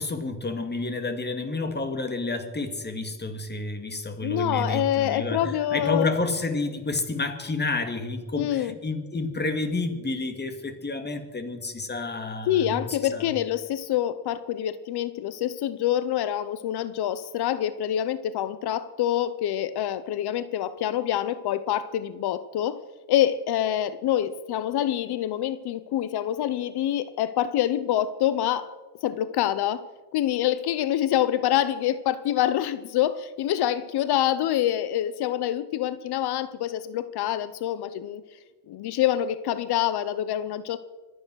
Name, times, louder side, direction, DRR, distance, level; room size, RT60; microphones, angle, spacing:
voice 1, 0.0-13.3, left 2 dB, 25° left, 7 dB, 2.2 m, -30 dB
voice 2, 4.2-6.1 8.3-8.7 12.5-22.8 23.1-28.7 29.0-29.8 30.1-38.2 38.7-40.8, left 11 dB, 85° left, 14 dB, 0.8 m, -26 dB
25.0 x 9.1 x 6.3 m, 1.3 s
cardioid pair, 100°, 38 cm